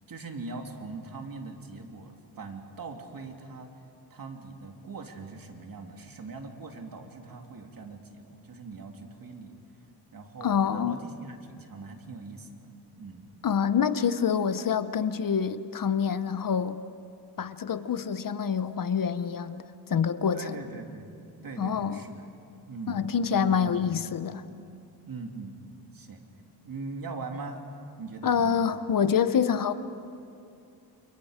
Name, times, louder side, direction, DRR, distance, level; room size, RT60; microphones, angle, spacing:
voice 1, 0.1-3.7 4.1-9.5 10.1-13.3 20.3-21.1 21.4-22.3 22.7-23.9 25.1-26.2 26.6-27.6 28.0-28.7, right 3 dB, 55° right, 2.8 m, -41 dB
voice 2, 10.4-11.0 13.4-16.8 17.4-20.6 21.6-22.0 22.9-24.4 28.2-29.7, left 7 dB, 50° left, 0.9 m, -26 dB
29.5 x 29.0 x 5.1 m
wide cardioid pair, 110°, 41 cm